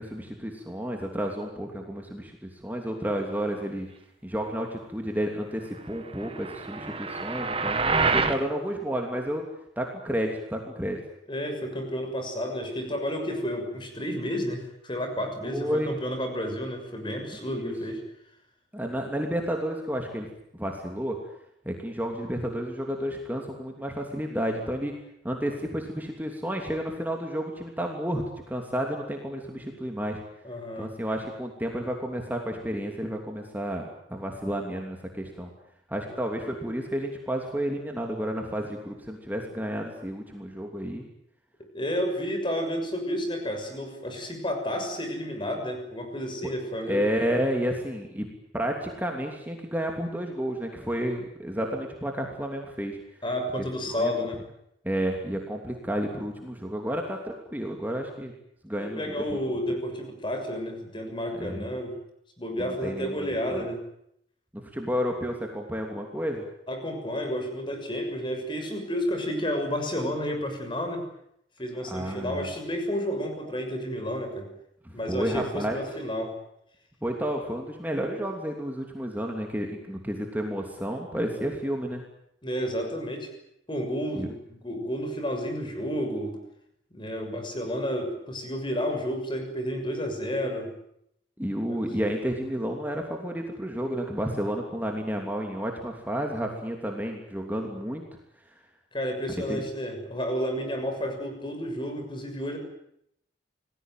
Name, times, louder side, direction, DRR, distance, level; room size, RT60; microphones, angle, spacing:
voice 1, 0.0-3.9 4.2-9.4 9.8-11.0 15.5-15.9 17.5-17.7 18.7-20.3 20.5-21.2 21.6-24.9 25.2-30.2 30.8-33.8 34.1-35.5 35.9-41.0 46.4-46.5 46.8-48.3 48.5-53.0 53.9-54.1 54.8-58.3 58.6-59.4 61.4-61.7 62.6-63.7 64.5-66.4 71.8-72.5 74.8-75.8 77.0-82.0 84.1-84.3 91.4-98.0 98.5-98.6 99.5-99.6, equal, 10° right, 2 dB, 3.0 m, -31 dB
sound 1, 6.2-8.4, right 4 dB, 30° right, 1.9 m, -27 dB
voice 2, 11.3-18.0 30.4-30.9 36.1-36.2 41.7-47.0 53.2-54.4 58.8-61.9 62.4-63.8 66.7-71.0 71.6-74.5 74.9-76.4 82.4-83.3 83.7-86.4 86.9-90.7 91.6-91.8 98.9-102.6, equal, 25° left, 5 dB, 6.5 m, -31 dB
28.5 x 20.0 x 9.3 m, 0.76 s
head